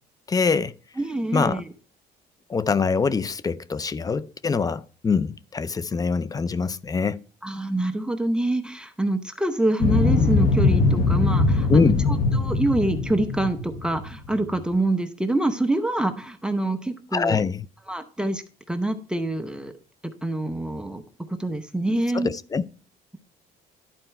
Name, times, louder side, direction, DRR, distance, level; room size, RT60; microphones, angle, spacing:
voice 1, 0.3-0.7 1.3-1.6 2.5-7.2 11.7-12.0 17.1-17.6 22.1-22.6, left 5 dB, 20° left, 0.4 m, -23 dB
voice 2, 1.0-1.7 7.4-17.4 17.9-19.7 20.2-21.0 21.3-22.3, right 1 dB, 5° right, 0.8 m, -26 dB
sound 1, 9.8-14.6, left 3 dB, 60° left, 1.3 m, -21 dB
11.0 x 4.5 x 4.2 m
cardioid pair, 110°, 17 cm